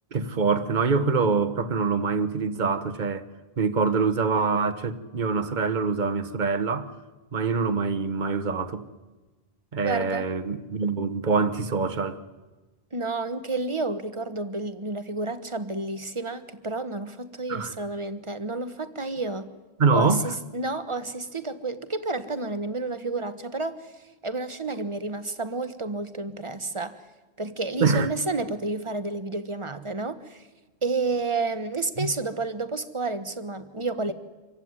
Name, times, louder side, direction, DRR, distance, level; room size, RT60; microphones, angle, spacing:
voice 1, 0.1-3.3 3.6-6.9 7.3-8.9 9.7-12.2 17.5-17.7 19.8-20.2 27.8-28.1 32.0-32.1, right 4 dB, 50° right, 1.3 m, -25 dB
voice 2, 9.8-10.3 12.9-19.5 19.9-23.9 24.2-27.0 27.4-30.5 30.8-34.1, right 3 dB, 30° right, 1.3 m, -30 dB
26.5 x 15.5 x 9.7 m
omnidirectional pair, 1.1 m